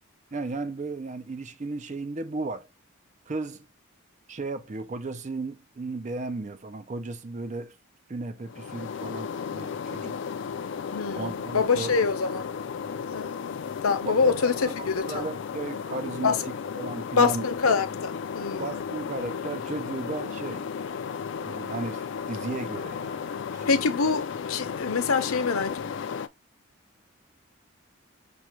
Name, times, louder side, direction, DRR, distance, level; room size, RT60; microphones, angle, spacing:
voice 1, 0.3-2.7 3.3-3.7 4.3-7.8 8.1-10.2 11.1-11.9 14.0-17.5 18.6-20.7 21.4-23.7, right 3 dB, 35° right, 0.4 m, -35 dB
sound 1, 8.4-26.3, left 6 dB, 55° left, 0.3 m, -34 dB
voice 2, 10.9-12.4 13.1-13.6 13.8-15.3 16.2-16.4 17.2-18.7 23.7-25.8, left 5 dB, 85° left, 0.7 m, -25 dB
6.1 x 2.2 x 3.0 m
head